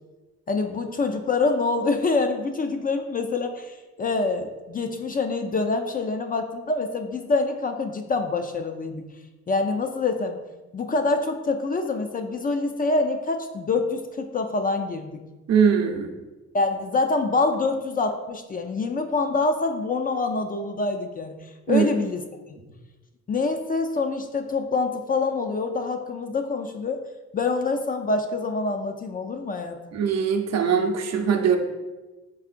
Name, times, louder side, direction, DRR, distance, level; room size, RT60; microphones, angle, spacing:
voice 1, 0.5-9.0 9.5-10.4 10.7-15.2 16.5-21.4 21.7-22.2 22.5-22.6 23.3-27.0 27.3-29.8, left 3 dB, 30° left, 6 dB, 0.4 m, -26 dB
voice 2, 15.5-16.1 21.7-21.9 29.9-31.6, right 7 dB, 60° right, 4 dB, 0.6 m, -21 dB
4.7 x 3.5 x 2.5 m, 1.2 s
cardioid pair, 90°, 30 cm